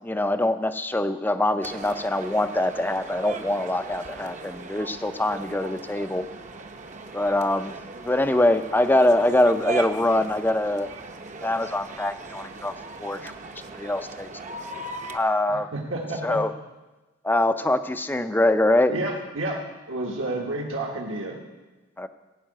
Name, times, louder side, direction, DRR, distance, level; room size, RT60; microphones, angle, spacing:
voice 1, 0.0-6.2 7.1-7.8 8.0-10.9 11.4-12.7 13.0-13.3 13.7-14.3 15.1-15.7 16.2-16.5 17.2-18.9 22.0-22.1, left 1 dB, 10° left, 10 dB, 0.5 m, -23 dB
sound 1, 1.6-15.2, right 3 dB, 35° right, 0.8 m, -38 dB
voice 2, 15.5-16.4 18.9-19.6 19.9-21.4, right 2 dB, 70° right, -1 dB, 1.5 m, -30 dB
16.0 x 5.6 x 8.8 m, 1.2 s
head